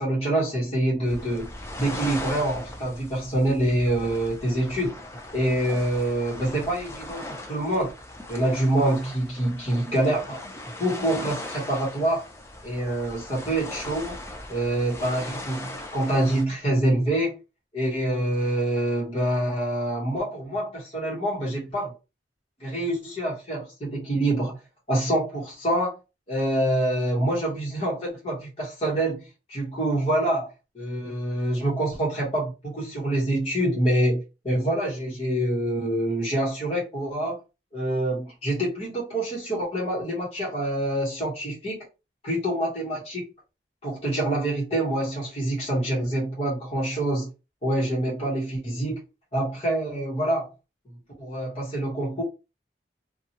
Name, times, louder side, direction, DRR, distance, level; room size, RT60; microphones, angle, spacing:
voice 1, 0.0-1.5 1.8-4.9 5.3-7.9 8.3-10.4 10.8-12.2 12.6-14.2 14.5-17.4 17.7-21.9 22.6-24.6 24.9-25.9 26.3-37.4 37.7-41.9 42.2-43.2 43.8-47.3 47.6-49.0 49.3-50.5 51.2-52.2, right 1 dB, 35° left, 1.0 m, -26 dB
sound 1, 1.1-16.4, left 1 dB, 15° left, 0.4 m, -39 dB
2.8 x 2.3 x 2.8 m
head